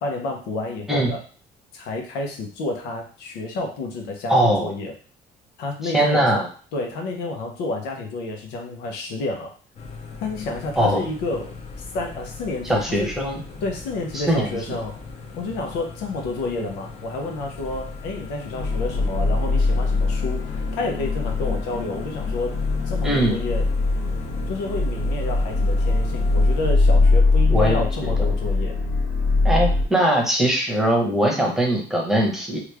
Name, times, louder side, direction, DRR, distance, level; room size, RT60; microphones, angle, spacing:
voice 1, 0.0-1.2 1.7-4.9 5.6-6.4 6.7-9.5 10.2-11.5 11.9-13.1 13.6-15.0 15.4-22.5 22.9-23.6 24.5-28.8, left 2 dB, 90° left, 2 dB, 0.8 m, -30 dB
voice 2, 4.3-4.7 5.9-6.5 10.8-11.0 12.6-13.4 14.1-14.8 23.0-23.4 27.5-28.1 29.4-32.6, right 1 dB, ahead, -1 dB, 0.9 m, -21 dB
sound 1, 9.8-26.7, left 4 dB, 40° left, 0.7 m, -39 dB
sound 2, 18.5-29.8, left 3 dB, 70° left, 1.5 m, -21 dB
3.1 x 2.4 x 3.3 m, 0.40 s
cardioid pair, 110°, 17 cm